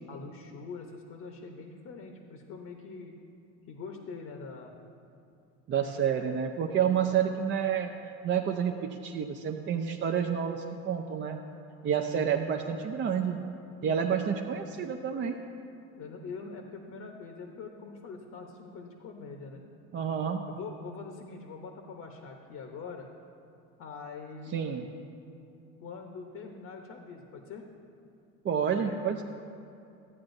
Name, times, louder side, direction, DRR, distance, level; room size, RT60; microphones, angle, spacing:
voice 1, 0.1-3.2 3.7-4.8 5.8-6.2 12.1-12.2 13.8-14.3 16.0-19.6 20.5-23.1 23.8-24.9 25.8-27.6 28.8-28.9, left 4 dB, 50° left, 3 dB, 0.9 m, -44 dB
voice 2, 5.7-7.9 8.2-11.4 11.8-13.4 13.8-15.4 19.9-20.4 24.5-24.8 28.4-29.2, right 8 dB, 35° right, 3 dB, 0.5 m, -29 dB
13.0 x 8.5 x 2.6 m, 2.6 s
supercardioid pair, 100°, 34 cm